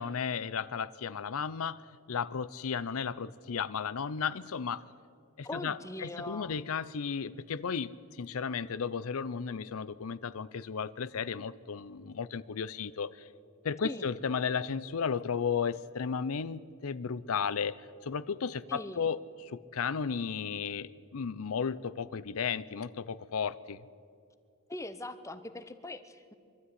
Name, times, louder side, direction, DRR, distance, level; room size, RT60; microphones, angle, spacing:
voice 1, 0.0-1.8 2.1-4.8 5.4-13.3 13.6-17.8 18.0-23.8, left 6 dB, 80° left, 17 dB, 0.5 m, -34 dB
voice 2, 5.4-6.6 13.8-14.1 18.7-19.1 24.7-26.3, left 1 dB, 15° left, 10 dB, 0.9 m, -41 dB
23.5 x 13.0 x 9.5 m, 2.4 s
head